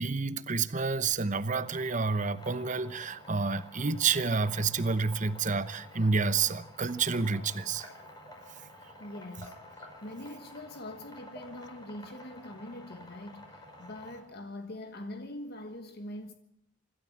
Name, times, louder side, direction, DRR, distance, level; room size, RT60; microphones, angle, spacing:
voice 1, 0.0-7.9 8.5-8.6, right 4 dB, 40° right, 0.9 m, -29 dB
sound 1, 1.5-14.2, left 1 dB, 20° left, 5.3 m, -50 dB
voice 2, 9.0-9.6 10.0-16.3, left 1 dB, 55° left, 1.4 m, -43 dB
25.5 x 12.5 x 8.6 m
head